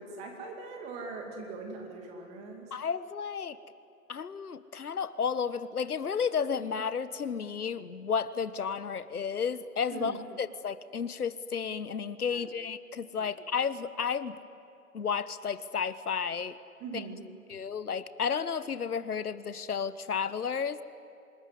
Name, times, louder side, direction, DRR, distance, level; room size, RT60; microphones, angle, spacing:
voice 1, 0.0-2.7 9.9-10.2 12.3-12.5 13.2-13.3 16.8-17.3, right 4 dB, 15° right, 3 dB, 2.3 m, -41 dB
voice 2, 2.7-3.6 4.1-14.4 14.9-16.6 16.9-17.0 17.5-20.8, left 6 dB, 75° left, 15 dB, 1.2 m, -32 dB
26.0 x 20.5 x 9.7 m, 2.8 s
hypercardioid pair, 155°, 45 cm